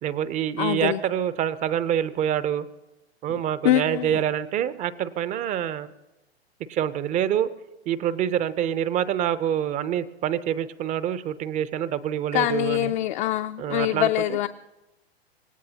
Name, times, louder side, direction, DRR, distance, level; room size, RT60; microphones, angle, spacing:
voice 1, 0.0-2.7 3.2-5.9 6.7-7.5 7.9-13.0 13.6-14.4, right 10 dB, 25° right, 15 dB, 0.7 m, -26 dB
voice 2, 0.6-1.0 3.3-4.2 12.3-14.5, left 14 dB, 45° left, 6 dB, 0.6 m, -24 dB
26.0 x 17.5 x 2.9 m, 1.0 s
hypercardioid pair, 115°, 32 cm